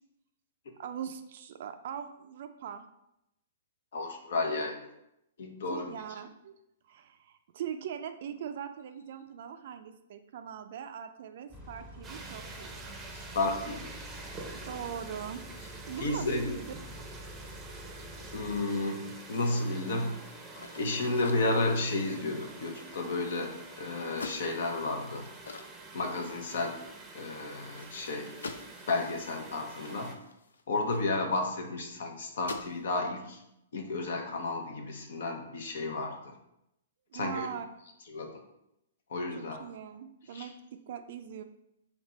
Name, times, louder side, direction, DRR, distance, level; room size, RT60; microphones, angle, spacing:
voice 1, 0.8-2.8 5.7-6.5 6.9-12.9 14.7-15.4 15.9-16.7 37.1-37.7 39.4-41.4, right 8 dB, 60° right, 8 dB, 0.3 m, -41 dB
voice 2, 3.9-4.8 5.4-5.9 13.1-13.9 16.0-16.5 18.3-19.0 19.3-20.2 20.8-25.3 25.9-26.8 27.1-28.3 28.9-30.1 30.7-33.4 33.7-36.2 37.1-37.5 38.1-38.3 39.1-39.6 40.3-40.4, left 2 dB, 70° left, 3 dB, 0.8 m, -32 dB
sound 1, 11.5-18.6, equal, 15° left, 1.4 m, -48 dB
sound 2, 12.0-30.1, right 3 dB, 15° right, 0.6 m, -47 dB
sound 3, 20.5-23.7 24.1-26.8 27.1-27.2 27.5-31.4 31.9-32.0 32.3-32.9, left 3 dB, 85° left, 0.4 m, -47 dB
3.3 x 2.9 x 4.1 m, 0.83 s
hypercardioid pair, 130°, 0 cm